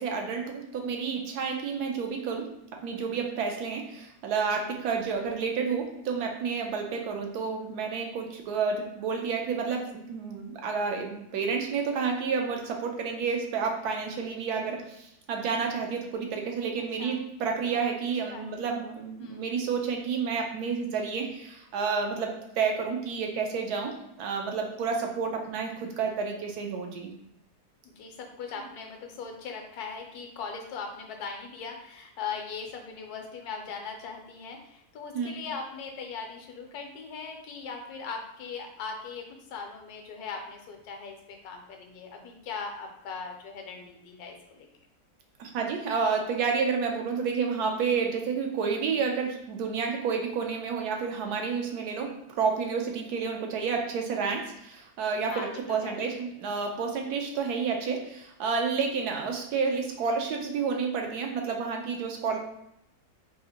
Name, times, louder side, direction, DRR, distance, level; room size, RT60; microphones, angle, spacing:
voice 1, 0.0-2.5 2.8-23.9 24.2-27.1 35.1-35.3 45.4-52.1 52.4-62.4, right 5 dB, 75° right, 2 dB, 1.1 m, -30 dB
voice 2, 16.8-17.2 17.6-17.8 18.2-19.5 27.8-44.7 55.3-56.0, left 5 dB, 75° left, 3 dB, 1.1 m, -40 dB
3.7 x 2.4 x 2.8 m, 0.80 s
omnidirectional pair, 1.7 m